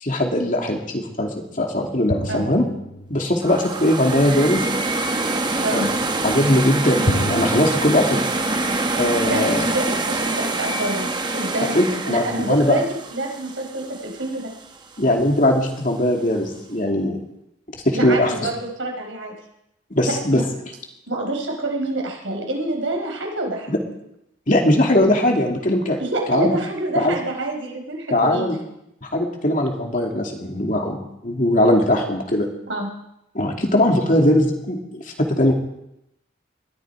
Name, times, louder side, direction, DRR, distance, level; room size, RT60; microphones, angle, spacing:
voice 1, 0.0-2.7 3.1-4.7 5.5-5.9 6.2-8.3 8.9-9.7 11.7-12.8 15.0-17.2 17.7-18.5 19.9-20.4 23.7-23.8 24.5-26.0 26.3-26.6 26.9-27.2 28.1-28.6 29.0-32.5 33.3-35.5, left 1 dB, 40° left, 1 dB, 2.6 m, -20 dB
sound 1, 2.1-3.8 7.1-7.7, equal, 75° left, 1.8 m, -28 dB
sound 2, 3.4-14.4, right 2 dB, 20° right, 1.1 m, -25 dB
voice 2, 5.6-5.9 9.2-11.1 11.3-11.8 12.0-12.8 13.1-14.5 17.9-19.3 20.0-20.4 21.1-23.7 26.0-28.6 32.7-32.9, right 2 dB, 70° right, 1 dB, 5.1 m, -27 dB
21.0 x 14.0 x 4.8 m, 0.82 s
head